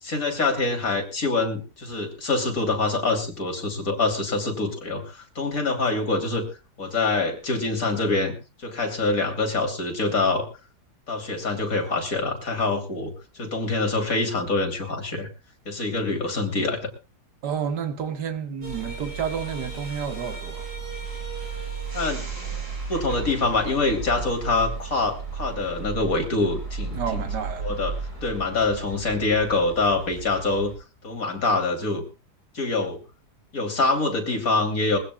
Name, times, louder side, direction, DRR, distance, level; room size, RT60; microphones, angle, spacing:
voice 1, 0.0-6.4 6.8-8.4 8.6-10.5 11.1-15.3 15.7-16.9 21.9-22.2 22.9-27.0 27.6-28.0 28.2-30.7 31.0-32.0 32.5-33.0 33.5-35.0, left 3 dB, 55° left, 3.3 m, -25 dB
voice 2, 17.4-20.7 27.0-27.7, right 7 dB, 85° right, 1.9 m, -30 dB
sound 1, 18.6-30.7, right 4 dB, 70° right, 5.9 m, -34 dB
22.5 x 16.0 x 2.3 m
omnidirectional pair, 1.8 m